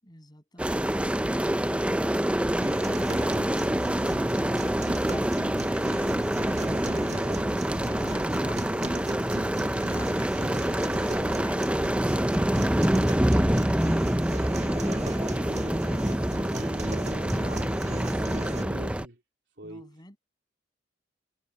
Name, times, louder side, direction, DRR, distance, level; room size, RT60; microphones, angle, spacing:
sound 1, 0.6-19.1, right 1 dB, 5° right, 0.6 m, -26 dB
sound 2, 2.6-18.6, right 2 dB, 40° right, 1.8 m, -38 dB
voice 1, 7.9-8.8 9.7-10.8 11.2-11.9 19.6-20.2, left 1 dB, 25° left, 7.8 m, -49 dB
voice 2, 17.4-19.2 19.6-20.2, right 1 dB, 70° right, 3.8 m, -44 dB
head